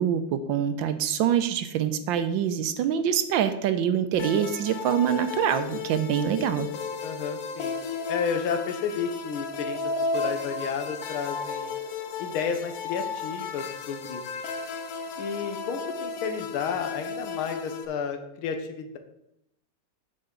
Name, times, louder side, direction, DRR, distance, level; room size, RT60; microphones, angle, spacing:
voice 1, 0.0-6.7, right 9 dB, 75° right, 10 dB, 1.3 m, -25 dB
sound 1, 4.1-17.9, left 4 dB, 65° left, 0.8 m, -34 dB
voice 2, 7.0-7.8 8.1-9.8 10.1-11.8 12.2-14.2 15.2-19.0, left 6 dB, 85° left, 7 dB, 1.6 m, -31 dB
8.7 x 6.6 x 3.7 m, 0.80 s
omnidirectional pair, 2.2 m